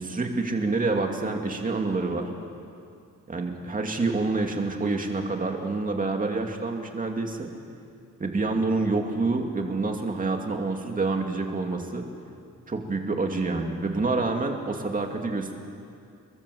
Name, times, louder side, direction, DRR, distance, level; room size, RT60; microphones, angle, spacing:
voice 1, 0.0-2.3 3.3-7.5 8.2-12.1 12.7-15.6, right 3 dB, 25° right, 2 dB, 2.5 m, -27 dB
27.5 x 23.0 x 7.9 m, 2.5 s
wide cardioid pair, 180°, 31 cm